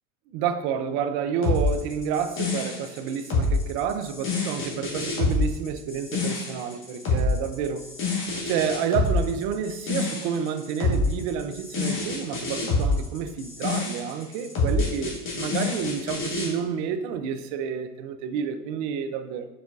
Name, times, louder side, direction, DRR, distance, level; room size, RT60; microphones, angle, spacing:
voice 1, 0.3-7.8 8.4-19.5, right 7 dB, 45° right, 0.4 m, -29 dB
sound 1, 1.4-16.5, left 3 dB, 30° left, 1.3 m, -27 dB
4.9 x 3.9 x 2.4 m
hypercardioid pair, 110°, 40 cm